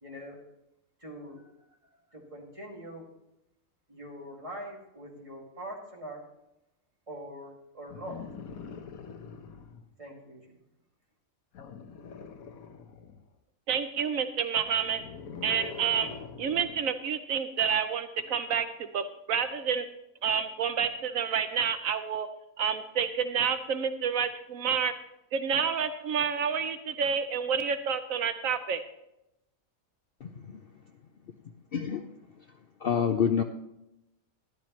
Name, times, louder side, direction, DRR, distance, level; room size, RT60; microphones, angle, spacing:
voice 1, 0.0-0.4 1.0-1.5 2.1-3.1 3.9-6.2 7.1-8.2 10.0-10.5, equal, 25° right, -2 dB, 2.5 m, -43 dB
sound 1, 7.9-9.9 11.5-13.3 14.6-16.9 18.2-18.3, left 6 dB, 85° left, 1.4 m, -44 dB
voice 2, 13.7-15.0 15.4-16.1 16.4-19.9 20.2-22.3 22.6-24.9 25.3-28.8, right 7 dB, 75° right, 9 dB, 1.1 m, -29 dB
voice 3, 31.7-32.1 32.8-33.4, left 7 dB, 55° left, 6 dB, 0.7 m, -26 dB
13.5 x 12.0 x 3.1 m, 0.87 s
omnidirectional pair, 1.5 m